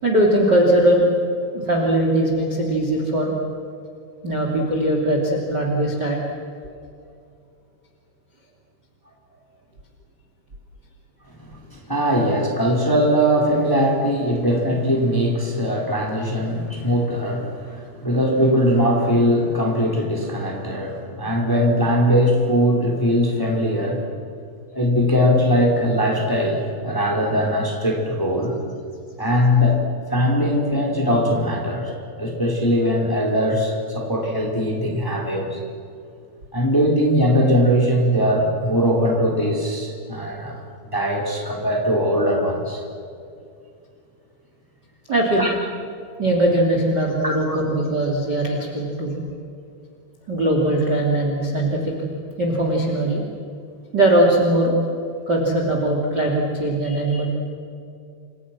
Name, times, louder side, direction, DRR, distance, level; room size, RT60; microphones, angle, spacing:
voice 1, 0.0-1.1 1.5-3.3 4.2-6.2 45.1-45.5 46.2-49.2 50.3-51.9 52.4-53.2 53.9-54.7 55.3-57.3, right 1 dB, 25° right, 0 dB, 3.1 m, -20 dB
voice 2, 11.4-24.0 24.7-28.6 29.2-29.8 30.1-35.6 36.5-40.6 40.9-42.8 45.4-45.5 47.2-47.6, equal, 5° left, -1 dB, 4.0 m, -20 dB
29.5 x 27.0 x 6.2 m, 2.5 s
omnidirectional pair, 5.1 m